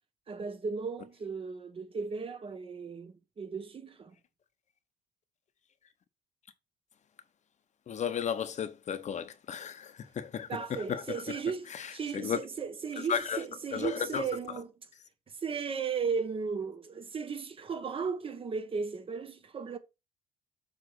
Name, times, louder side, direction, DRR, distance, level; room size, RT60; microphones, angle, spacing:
voice 1, 0.3-4.1 10.5-14.7 15.4-19.8, right 5 dB, 35° right, 1.3 m, -36 dB
voice 2, 7.9-11.4 11.7-12.4 13.0-13.4 13.7-14.3, left 8 dB, 45° left, 1.0 m, -34 dB
7.9 x 3.4 x 6.2 m
cardioid pair, 110°, 17 cm